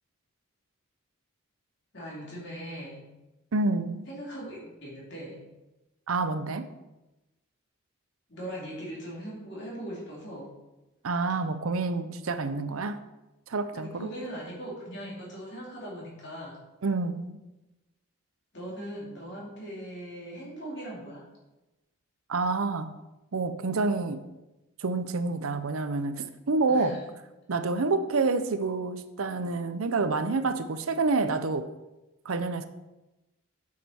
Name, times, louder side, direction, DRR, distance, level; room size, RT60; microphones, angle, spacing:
voice 1, 1.9-3.1 4.1-5.5 8.3-10.5 13.7-16.6 18.5-21.2 26.7-27.1, equal, 55° left, 3.1 m, -40 dB
voice 2, 3.5-4.0 6.1-6.7 11.0-13.0 13.5-14.1 16.8-17.4 22.3-22.9 23.3-24.2 24.8-27.0 27.5-31.7 32.2-32.7, right 3 dB, 85° right, 0.7 m, -28 dB
8.4 x 6.6 x 4.3 m
head